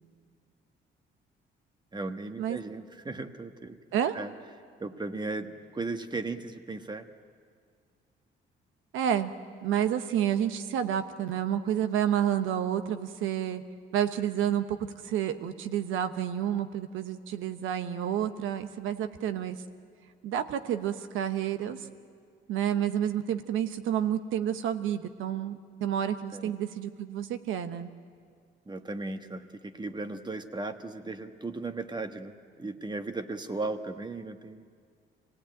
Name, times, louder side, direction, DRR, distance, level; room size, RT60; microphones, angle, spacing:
voice 1, 1.9-3.8 4.1-4.3 4.8-7.1 26.3-26.5 28.7-34.6, right 3 dB, 20° right, 8 dB, 1.3 m, -36 dB
voice 2, 8.9-9.3 9.6-13.6 13.9-19.6 20.2-21.9 22.5-27.9, right 10 dB, 90° right, 10 dB, 1.1 m, -29 dB
24.5 x 17.5 x 9.1 m, 2.1 s
cardioid pair, 90°, 20 cm